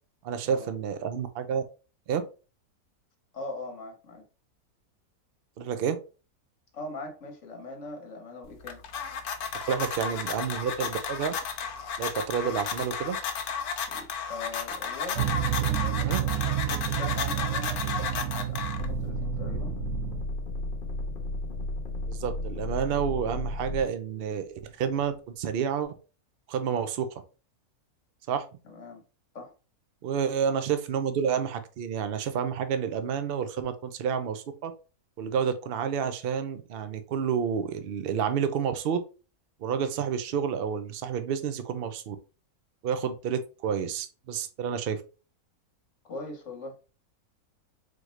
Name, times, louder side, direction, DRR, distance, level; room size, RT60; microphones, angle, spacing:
voice 1, 0.2-1.6 2.1-2.2 5.6-6.0 9.7-11.3 12.0-13.2 16.0-16.2 22.1-25.9 26.5-27.2 28.3-28.5 30.0-34.7 35.2-39.0 39.6-42.2 42.8-45.0, right 7 dB, 65° right, 9 dB, 0.6 m, -29 dB
voice 2, 3.3-4.3 6.7-8.8 13.9-19.8 28.6-29.0 29.3-29.5 46.1-46.8, left 2 dB, 55° left, 3 dB, 1.2 m, -41 dB
sound 1, 8.4-19.1, left 6 dB, 80° left, 1.1 m, -33 dB
sound 2, 15.2-20.2, right 12 dB, 80° right, 1.1 m, -30 dB
sound 3, 18.7-23.8 24.5-25.2, left 2 dB, 40° left, 1.0 m, -34 dB
4.2 x 3.0 x 3.1 m, 0.33 s
omnidirectional pair, 1.6 m